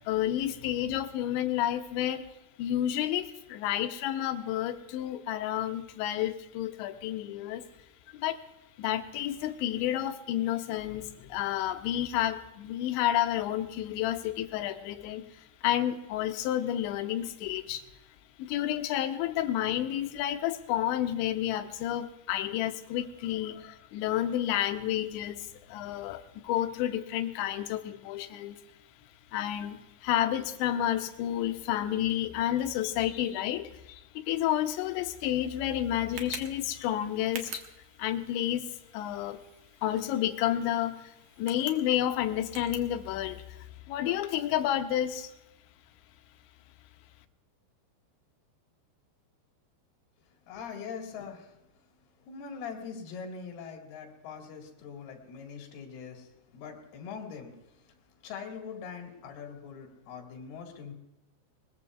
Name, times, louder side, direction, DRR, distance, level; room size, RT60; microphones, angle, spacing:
voice 1, 0.0-2.3 2.6-7.6 8.1-8.4 8.8-15.2 15.6-17.8 18.4-28.6 29.3-29.8 30.0-37.6 38.0-38.6 38.9-39.4 39.8-41.0 41.4-43.4 43.9-45.3, left 12 dB, 85° left, 8 dB, 3.0 m, -30 dB
Tick, 34.5-43.7, right 6 dB, 75° right, 1.7 m, -49 dB
voice 2, 50.5-51.6 52.3-57.5 58.2-60.9, left 6 dB, 65° left, 2 dB, 3.5 m, -42 dB
21.0 x 20.5 x 2.4 m, 0.95 s
omnidirectional pair, 5.3 m